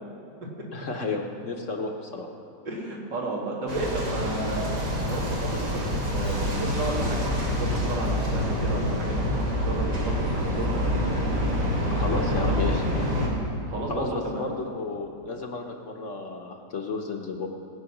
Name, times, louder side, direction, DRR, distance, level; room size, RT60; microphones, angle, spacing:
voice 1, 0.7-2.3 11.9-12.8 13.9-17.5, left 3 dB, 50° left, 3 dB, 1.2 m, -32 dB
voice 2, 2.6-4.7 5.1-11.1 11.8-12.7 13.7-14.4, right 2 dB, 85° right, -3 dB, 2.9 m, -33 dB
sound 1, 3.7-13.3, equal, 70° right, 3.1 m, -26 dB
19.5 x 8.1 x 6.0 m, 2.8 s
omnidirectional pair, 1.9 m